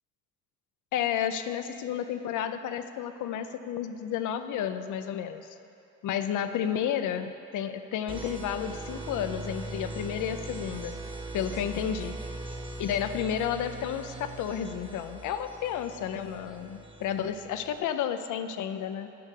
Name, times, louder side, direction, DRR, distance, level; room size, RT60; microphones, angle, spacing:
voice 1, 0.9-5.5 6.0-10.9 11.3-12.2 12.8-19.1, left 9 dB, 80° left, 9 dB, 0.6 m, -31 dB
sound 1, 8.1-17.8, right 2 dB, 15° right, 1.0 m, -40 dB
9.6 x 6.5 x 6.6 m, 2.7 s
cardioid pair, 90°, 30 cm